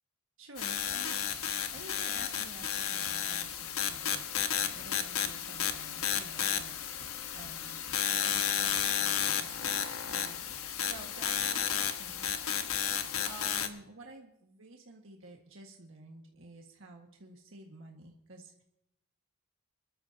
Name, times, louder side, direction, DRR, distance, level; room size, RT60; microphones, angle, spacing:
voice 1, 0.4-1.2 1.7-7.8 8.1-12.7 13.2-18.6, right 2 dB, 65° right, 0 dB, 1.7 m, -51 dB
sound 1, 0.6-13.7, left 9 dB, 80° left, 1.2 m, -33 dB
26.5 x 13.0 x 2.8 m, 0.83 s
head